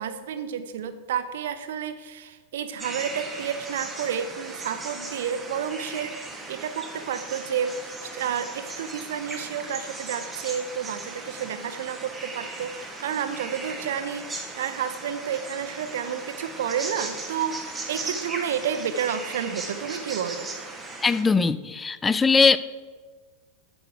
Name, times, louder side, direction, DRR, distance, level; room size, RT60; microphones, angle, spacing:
voice 1, 0.0-6.1 6.5-7.7 8.0-20.5, right 8 dB, 60° right, 10 dB, 0.7 m, -30 dB
sound 1, 2.8-21.2, right 3 dB, 10° right, 1.3 m, -37 dB
voice 2, 21.0-22.6, left 4 dB, 15° left, 15 dB, 0.4 m, -20 dB
9.3 x 6.4 x 4.9 m, 1.4 s
figure-of-eight pair, 90°, 0 cm